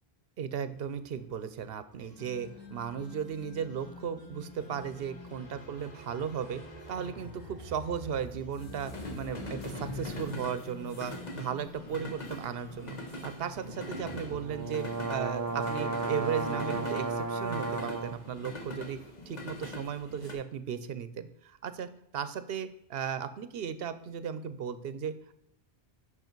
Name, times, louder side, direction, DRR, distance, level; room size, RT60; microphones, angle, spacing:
voice 1, 0.4-6.6 6.9-19.0 19.3-21.9 22.1-25.1, right 7 dB, 75° right, 12 dB, 0.8 m, -36 dB
sound 1, 0.8-20.3, left 1 dB, 45° left, 1.2 m, -43 dB
sound 2, 2.0-14.8, left 2 dB, 20° left, 1.5 m, -50 dB
sound 3, 14.3-18.2, right 4 dB, 25° right, 0.4 m, -33 dB
7.9 x 6.0 x 4.5 m, 0.81 s
omnidirectional pair, 1.0 m